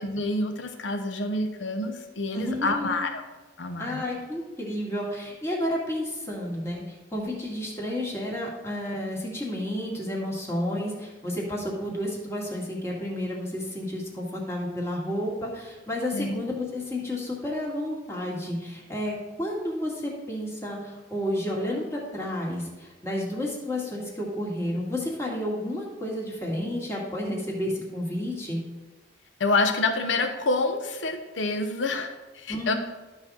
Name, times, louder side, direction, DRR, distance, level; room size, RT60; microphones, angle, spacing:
voice 1, 0.0-3.3 3.6-4.0 16.1-16.4 29.4-32.7, left 2 dB, 85° left, 6 dB, 0.9 m, -27 dB
voice 2, 2.3-3.1 3.8-28.6 32.5-32.8, left 1 dB, 15° left, -3 dB, 2.1 m, -31 dB
12.5 x 4.2 x 6.2 m, 1.2 s
head